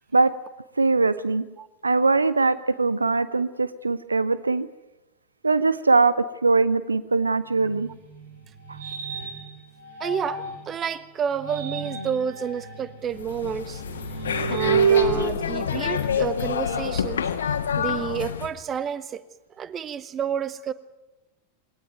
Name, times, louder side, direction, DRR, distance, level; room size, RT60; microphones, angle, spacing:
voice 1, 0.8-1.4 1.8-4.7 5.4-7.9 8.7-8.8, right 3 dB, 80° right, 16 dB, 0.7 m, -21 dB
sound 1, 7.6-10.7 11.3-16.4, right 6 dB, 60° right, 5.0 m, -29 dB
voice 2, 10.0-13.8 14.5-17.2 17.8-19.2 19.6-20.7, right 8 dB, 25° right, 15 dB, 1.1 m, -30 dB
sound 2, 13.1-18.5, left 7 dB, 65° left, 1.9 m, -28 dB
22.0 x 18.0 x 9.2 m, 1.1 s
figure-of-eight pair, 90°, 0 cm